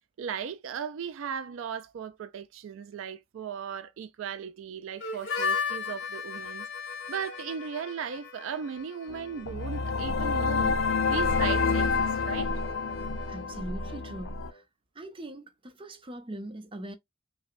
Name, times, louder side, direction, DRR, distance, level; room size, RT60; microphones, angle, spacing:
voice 1, 0.2-12.5, right 7 dB, 75° right, 0.4 m, -37 dB
Harmonica, 5.0-14.6, left 5 dB, 65° left, 1.8 m, -38 dB
sound 1, 9.1-14.5, left 4 dB, 85° left, 0.5 m, -28 dB
voice 2, 13.3-14.6 15.0-17.0, right 1 dB, 25° right, 0.7 m, -41 dB
5.6 x 2.2 x 2.5 m
head